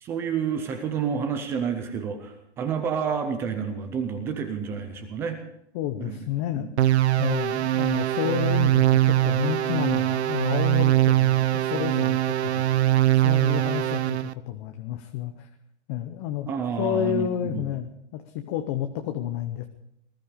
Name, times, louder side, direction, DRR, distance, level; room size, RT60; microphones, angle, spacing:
voice 1, 0.0-5.4 6.0-6.2 6.6-6.7 16.5-17.6, right 7 dB, 5° right, 7 dB, 0.5 m, -29 dB
voice 2, 5.7-6.7 7.2-13.0 13.2-15.5 15.9-16.5 16.8-19.7, left 11 dB, 20° left, 7 dB, 0.8 m, -30 dB
sound 1, 6.8-14.3, right 14 dB, 65° right, 0.9 m, -22 dB
19.5 x 13.0 x 5.2 m, 0.77 s
hypercardioid pair, 160°, 36 cm